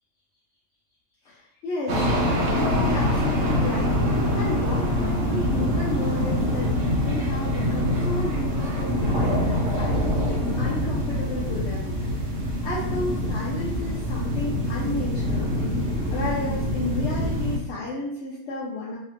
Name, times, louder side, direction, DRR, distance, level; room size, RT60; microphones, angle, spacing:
voice 1, 1.3-2.0 2.5-3.9 4.3-12.2 12.6-15.5 16.1-19.0, left 2 dB, 70° left, -5 dB, 0.9 m, -32 dB
sound 1, 1.9-17.6, left 1 dB, 80° right, 1.1 m, -25 dB
3.2 x 2.8 x 2.9 m, 0.79 s
omnidirectional pair, 1.3 m